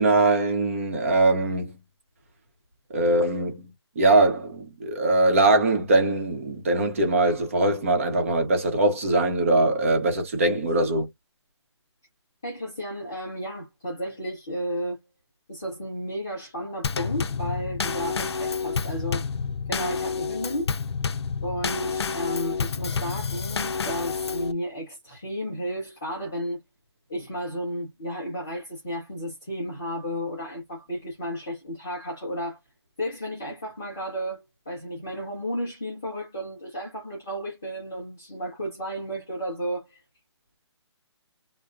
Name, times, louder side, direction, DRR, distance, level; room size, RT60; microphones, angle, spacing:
voice 1, 0.0-1.8 2.9-11.1, right 2 dB, 30° right, 0.9 m, -22 dB
voice 2, 12.4-15.0 15.5-19.3 19.7-20.7 21.4-26.6 27.1-32.6 33.0-40.0, equal, 5° left, 0.3 m, -33 dB
Drum kit / Snare drum / Bass drum, 16.8-24.5, left 5 dB, 65° left, 0.6 m, -29 dB
3.6 x 2.2 x 2.5 m
hypercardioid pair, 175°, 15 cm